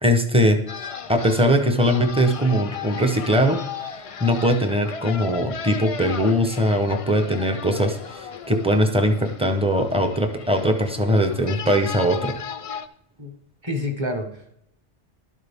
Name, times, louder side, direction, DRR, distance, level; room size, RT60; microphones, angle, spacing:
voice 1, 0.0-0.6 1.1-3.6 4.2-12.3, equal, 5° right, 5 dB, 0.8 m, -20 dB
sound 1, 0.7-12.9, left 6 dB, 55° left, 0.4 m, -36 dB
voice 2, 13.6-14.5, left 1 dB, 25° right, 2 dB, 1.2 m, -28 dB
12.0 x 8.4 x 3.6 m, 0.76 s
omnidirectional pair, 1.2 m